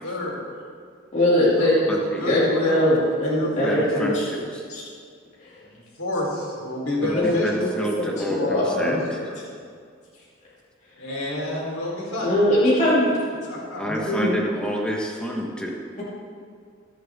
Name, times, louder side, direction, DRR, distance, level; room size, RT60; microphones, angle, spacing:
voice 1, 0.0-0.5 1.5-4.2 5.6-7.7 8.3-9.5 11.0-12.4 13.5-14.1, left 1 dB, 90° left, -4 dB, 3.7 m, -30 dB
voice 2, 1.1-1.8 2.3-4.2 4.7-4.8 5.4-5.5 7.1-7.7 8.0-9.0 12.2-13.1 13.9-14.3, left 1 dB, 35° left, -8 dB, 2.5 m, -21 dB
voice 3, 1.9-2.2 3.6-4.6 7.0-9.2 13.8-15.8, equal, 5° left, -1 dB, 1.3 m, -29 dB
23.0 x 7.7 x 3.6 m, 2.2 s
head